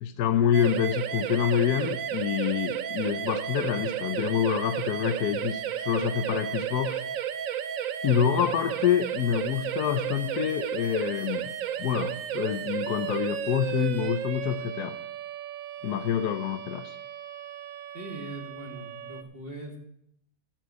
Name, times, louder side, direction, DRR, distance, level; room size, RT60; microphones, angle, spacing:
voice 1, 0.0-7.0 8.0-11.5 11.8-15.0 15.8-17.0, left 9 dB, 85° left, 9 dB, 1.2 m, -27 dB
sound 1, 0.5-19.2, right 10 dB, 65° right, 1.0 m, -33 dB
voice 2, 17.9-19.8, right 1 dB, 35° right, -1 dB, 2.5 m, -40 dB
13.5 x 4.6 x 8.1 m, 0.75 s
omnidirectional pair, 1.6 m